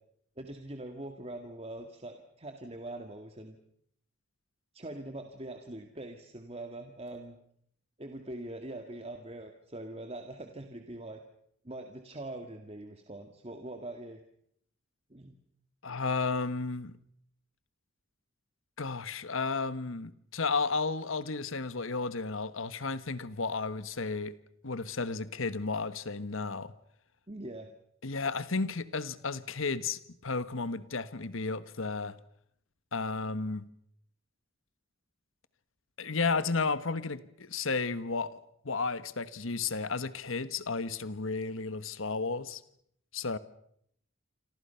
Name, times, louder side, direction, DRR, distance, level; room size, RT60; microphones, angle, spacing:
voice 1, 0.4-3.6 4.7-7.4 8.0-11.2 11.6-14.2 15.1-15.4 27.3-27.7, right 1 dB, 30° right, 5 dB, 1.9 m, -43 dB
voice 2, 15.8-17.0 18.8-24.4 24.6-26.7 28.0-32.2 32.9-33.7 36.0-38.4 38.6-42.6 43.1-43.4, left 4 dB, 70° left, 14 dB, 1.3 m, -33 dB
29.0 x 25.5 x 5.7 m, 0.69 s
head